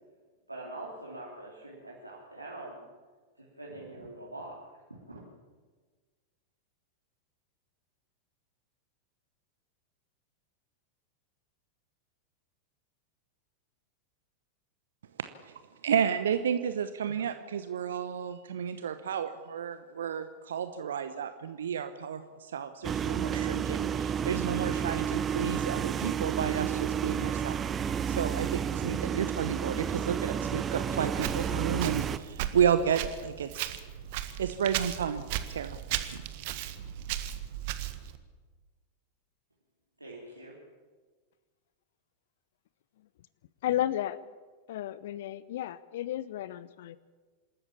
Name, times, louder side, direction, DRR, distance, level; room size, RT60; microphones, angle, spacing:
voice 1, 0.5-2.9 3.4-4.6 4.9-5.2 40.0-40.6, right 2 dB, 85° right, -4 dB, 3.4 m, -44 dB
voice 2, 15.2-27.6 28.1-33.7 34.4-35.2 35.5-35.8 36.1-36.2, right 8 dB, 65° right, 10 dB, 1.0 m, -32 dB
sound 1, 22.8-32.2, right 8 dB, 25° right, 0.9 m, -31 dB
Walk footsteps, 31.2-38.2, right 12 dB, 50° right, 1.6 m, -36 dB
voice 3, 43.6-44.2 44.7-47.0, left 12 dB, 55° left, 18 dB, 0.7 m, -33 dB
26.5 x 13.5 x 8.7 m, 1.4 s
figure-of-eight pair, 90°, 0 cm